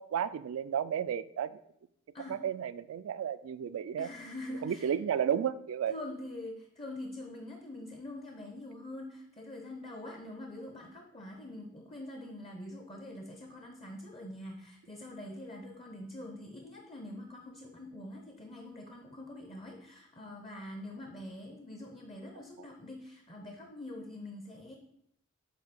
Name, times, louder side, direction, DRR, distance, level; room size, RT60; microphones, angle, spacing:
voice 1, 0.0-1.5 2.3-4.1 4.6-5.9, right 8 dB, 75° right, 15 dB, 0.3 m, -32 dB
voice 2, 4.0-4.9 5.9-24.8, left 1 dB, 25° left, 2 dB, 0.6 m, -44 dB
7.7 x 2.7 x 5.1 m, 0.76 s
head